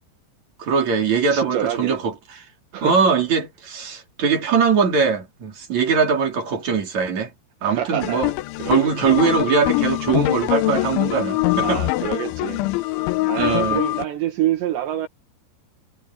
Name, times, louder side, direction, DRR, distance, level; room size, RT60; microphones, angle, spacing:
voice 1, 0.6-2.1 2.8-7.3 7.6-8.3 8.7-11.8 13.4-13.8, right 6 dB, 40° right, 4.9 m, -21 dB
voice 2, 1.3-2.0 2.7-3.0 7.6-8.2 8.6-8.9 11.5-15.1, right 11 dB, 70° right, 3.7 m, -27 dB
sound 1, 8.0-14.0, left 19 dB, 90° left, 3.2 m, -23 dB
omnidirectional pair, 5.5 m